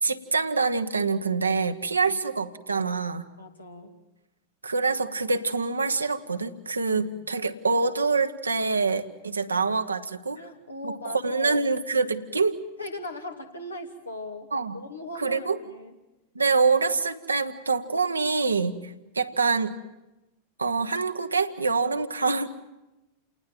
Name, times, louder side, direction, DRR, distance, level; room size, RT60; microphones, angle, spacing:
voice 1, 0.0-3.2 4.6-10.4 10.8-10.9 11.2-12.6 14.5-14.8 15.1-15.6 16.3-19.7 20.6-22.5, right 4 dB, 80° right, 7 dB, 1.2 m, -25 dB
voice 2, 3.4-3.9 6.9-7.1 10.3-11.7 12.8-14.5 14.7-15.9, left 1 dB, 80° left, 4 dB, 2.7 m, -39 dB
28.5 x 19.5 x 7.7 m, 0.99 s
figure-of-eight pair, 90°, 0 cm